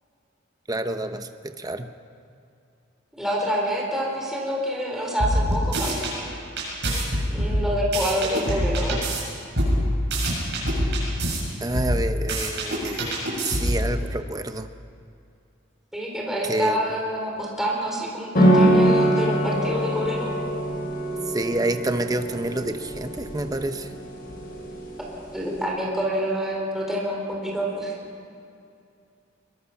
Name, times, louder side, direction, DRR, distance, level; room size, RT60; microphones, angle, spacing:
voice 1, 0.7-1.9 11.6-13.1 13.4-14.7 16.5-16.8 21.3-23.9, right 1 dB, 20° right, 8 dB, 0.9 m, -28 dB
voice 2, 3.2-6.3 7.3-9.0 15.9-20.4 25.3-27.9, equal, ahead, -3 dB, 4.1 m, -27 dB
sound 1, 5.2-6.1 6.6-9.2 9.5-11.4 11.7-13.9, equal, 60° right, 7.4 m, -24 dB
sound 2, 18.3-25.6, right 1 dB, 50° left, 5.9 m, -23 dB
23.0 x 22.0 x 5.9 m, 2.5 s
head